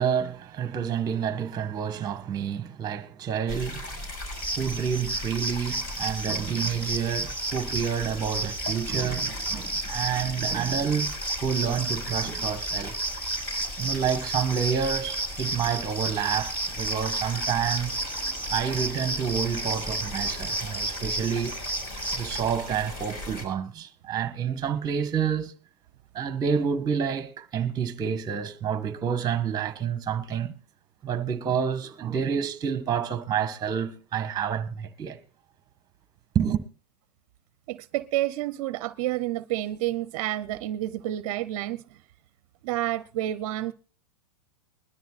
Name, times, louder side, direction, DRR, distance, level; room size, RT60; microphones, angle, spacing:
voice 1, 0.0-3.9 4.6-11.1 11.4-13.0 13.8-18.0 18.4-21.5 22.1-25.5 26.1-30.5 31.0-35.2 36.3-36.6, right 7 dB, 20° right, 1.6 m, -28 dB
sound 1, 3.5-23.5, left 1 dB, 40° left, 6.7 m, -38 dB
sound 2, 4.3-22.4, right 2 dB, 5° left, 4.7 m, -32 dB
voice 2, 37.7-41.8 42.6-43.7, right 14 dB, 55° right, 0.8 m, -29 dB
21.5 x 12.5 x 2.5 m
hypercardioid pair, 125°, 20 cm